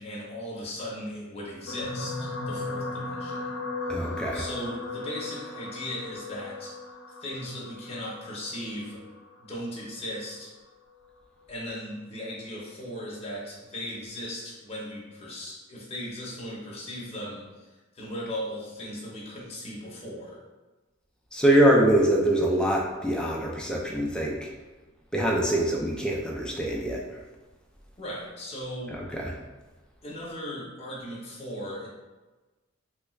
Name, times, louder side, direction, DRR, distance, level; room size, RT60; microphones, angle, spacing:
voice 1, 0.0-3.6 3.9-6.8 7.2-9.0 9.4-10.5 11.5-17.7 17.9-20.4 28.0-29.0 30.0-31.9, equal, 30° left, -5 dB, 0.8 m, -37 dB
sound 1, 1.7-10.1 10.9-11.1 11.4-11.5, left 2 dB, 85° left, 0.5 m, -37 dB
voice 2, 3.9-4.4 21.3-24.5 25.1-27.2 28.9-29.3, right 1 dB, 5° left, -2 dB, 0.4 m, -24 dB
3.2 x 2.3 x 3.1 m, 1.2 s
head